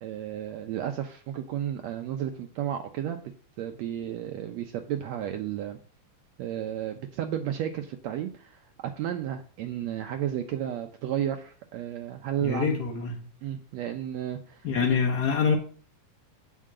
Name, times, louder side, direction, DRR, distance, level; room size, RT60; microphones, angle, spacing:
voice 1, 0.0-3.2 3.6-5.8 6.4-12.8 13.4-14.9, right 10 dB, 75° right, 1.7 m, -33 dB
voice 2, 12.4-13.2 14.6-15.5, left 6 dB, 75° left, 0.9 m, -25 dB
7.4 x 5.6 x 7.6 m
omnidirectional pair, 3.6 m